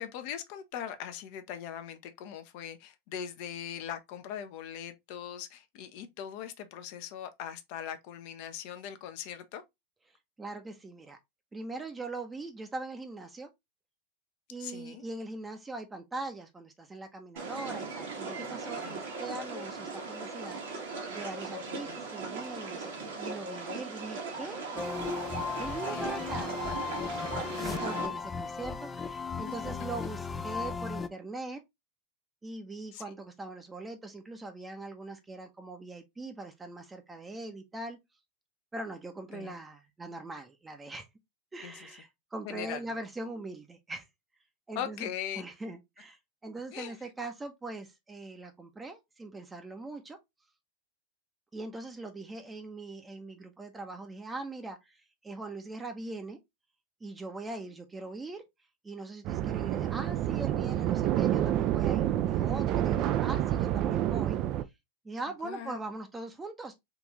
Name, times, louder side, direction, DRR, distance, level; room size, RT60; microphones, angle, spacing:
voice 1, 0.0-9.6 14.6-15.0 18.8-19.0 21.7-22.0 25.8-26.1 27.6-28.2 32.9-33.0 39.3-39.5 41.6-41.9 42.4-43.0 44.7-45.5 46.7-47.0 65.4-65.8, left 9 dB, 55° left, 0.7 m, -40 dB
voice 2, 10.4-11.2 11.5-13.5 14.5-24.8 25.6-31.6 32.4-38.0 38.7-41.1 41.5-44.1 44.7-45.1 45.4-50.2 51.5-56.4 57.0-58.4 58.8-64.4 65.0-66.7, right 2 dB, 15° right, 0.7 m, -41 dB
sound 1, 17.4-28.1, right 3 dB, 75° right, 1.5 m, -38 dB
sound 2, 24.8-31.1, left 5 dB, 20° left, 0.4 m, -36 dB
sound 3, 59.2-64.6, right 12 dB, 45° right, 0.4 m, -28 dB
3.8 x 2.5 x 3.0 m
hypercardioid pair, 95°, 0 cm